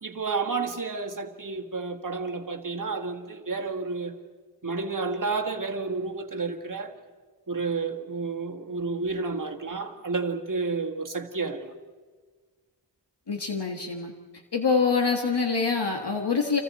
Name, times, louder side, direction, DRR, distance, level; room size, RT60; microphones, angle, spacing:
voice 1, 0.0-4.2 4.6-6.9 7.5-11.7, right 4 dB, 45° right, 1.6 m, -31 dB
voice 2, 13.3-14.1 14.5-16.6, left 5 dB, 65° left, 1.7 m, -25 dB
30.0 x 26.5 x 4.2 m
wide cardioid pair, 75°, 43 cm